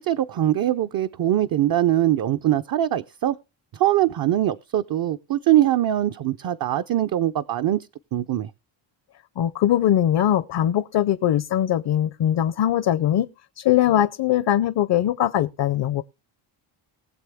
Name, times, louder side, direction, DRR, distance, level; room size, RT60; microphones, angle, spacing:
voice 1, 0.0-3.4 3.7-8.5, right 13 dB, 50° right, 0.5 m, -22 dB
voice 2, 9.4-13.3 13.6-16.0, left 11 dB, 60° left, 0.6 m, -21 dB
19.5 x 7.4 x 3.5 m
cardioid pair, 125°, 47 cm